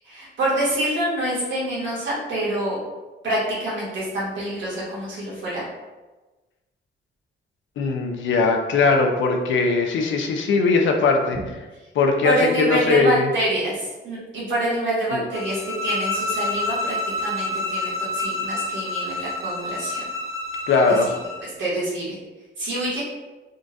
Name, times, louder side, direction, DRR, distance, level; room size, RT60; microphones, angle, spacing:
voice 1, 0.0-2.8 3.2-5.6 12.2-20.0 20.9-21.0 21.4-22.2 22.6-23.0, right 1 dB, 70° right, -7 dB, 1.4 m, -26 dB
voice 2, 7.8-11.4 11.9-13.3 15.1-15.2 20.7-21.1, left 4 dB, 75° left, 3 dB, 0.5 m, -20 dB
sound 1, 15.3-21.5, left 2 dB, 15° right, 0.4 m, -28 dB
3.7 x 2.3 x 2.5 m, 1.2 s
wide cardioid pair, 175°, 20 cm